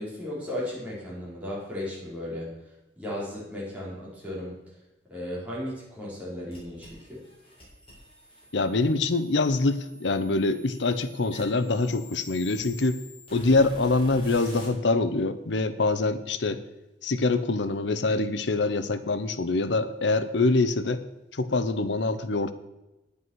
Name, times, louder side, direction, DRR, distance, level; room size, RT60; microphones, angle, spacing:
voice 1, 0.0-2.5 3.0-4.6 5.1-7.2, left 1 dB, 10° right, -7 dB, 4.2 m, -35 dB
sound 1, 6.5-14.7, left 2 dB, 30° left, 4.0 m, -48 dB
voice 2, 8.5-13.0 13.3-16.6 17.0-21.0 21.3-22.5, left 3 dB, 80° left, 12 dB, 0.8 m, -25 dB
9.5 x 8.4 x 6.3 m, 0.99 s
head